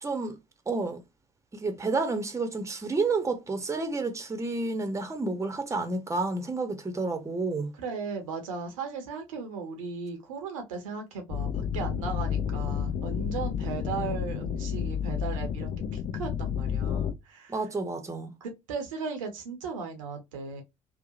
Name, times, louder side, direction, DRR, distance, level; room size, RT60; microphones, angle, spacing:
voice 1, 0.0-0.4 0.7-1.0 1.5-7.7 17.5-18.3, right 3 dB, 15° right, 0.7 m, -30 dB
voice 2, 7.8-17.6 18.4-20.6, right 5 dB, 80° right, 0.6 m, -37 dB
sound 1, 11.3-17.1, left 8 dB, 55° left, 0.6 m, -30 dB
2.7 x 2.1 x 2.3 m
figure-of-eight pair, 50°, 17 cm